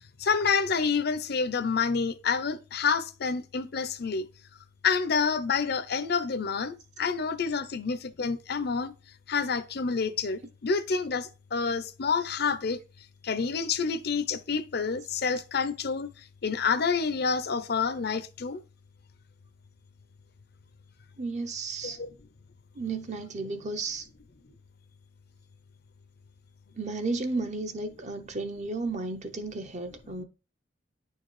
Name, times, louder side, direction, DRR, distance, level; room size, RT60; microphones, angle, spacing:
voice 1, 0.2-4.3 4.8-8.9 9.3-12.8 13.2-18.6 21.8-22.1, left 5 dB, 60° left, 0.6 m, -28 dB
voice 2, 21.2-22.0 22.7-24.1 26.7-30.2, right 3 dB, 40° right, 0.7 m, -33 dB
9.6 x 4.6 x 3.2 m
head